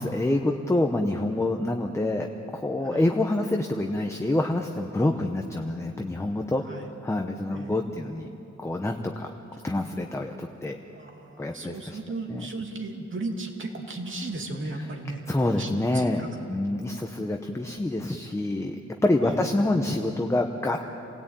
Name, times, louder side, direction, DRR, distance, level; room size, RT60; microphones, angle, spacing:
voice 1, 0.0-2.3 2.5-8.3 8.6-9.3 9.6-10.8 11.4-12.0 12.3-12.5 14.8-14.9 15.3-18.8 19.0-20.8, left 2 dB, 10° left, 3 dB, 0.9 m, -27 dB
voice 2, 10.9-15.2 15.5-16.3 19.2-19.5, right 2 dB, 45° right, 2 dB, 2.6 m, -35 dB
28.0 x 17.5 x 9.1 m, 3.0 s
wide cardioid pair, 175°, 29 cm